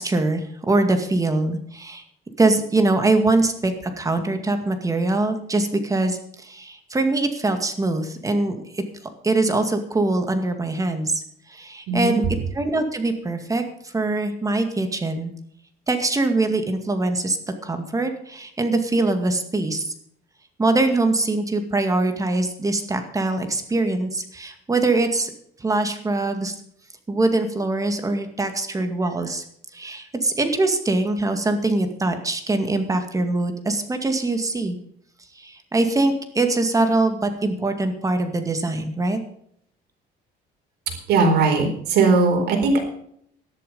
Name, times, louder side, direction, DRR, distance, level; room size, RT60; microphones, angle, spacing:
voice 1, 0.0-2.0 2.4-8.8 9.2-11.2 11.5-12.2 12.5-15.3 15.9-17.4 17.6-19.8 20.6-25.3 25.6-26.5 27.1-29.4 29.7-34.8 35.4-39.2, right 2 dB, 20° right, 6 dB, 2.1 m, -23 dB
voice 2, 11.9-12.2 40.9-42.8, right 4 dB, 80° right, 4 dB, 4.2 m, -19 dB
13.0 x 11.5 x 5.5 m, 0.67 s
cardioid pair, 110°, 17 cm